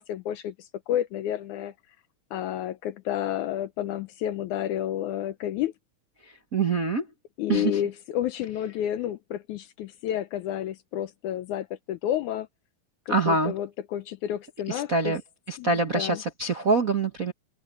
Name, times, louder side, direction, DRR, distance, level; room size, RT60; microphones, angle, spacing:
voice 1, 0.0-1.7 2.3-5.7 7.4-12.5 13.1-15.2 15.6-16.2, left 11 dB, 75° left, 1.9 m, -30 dB
voice 2, 6.5-7.0 7.5-7.7 13.1-13.5 14.7-15.2 15.5-17.3, right 3 dB, 50° right, 1.0 m, -25 dB
open air
omnidirectional pair, 4.0 m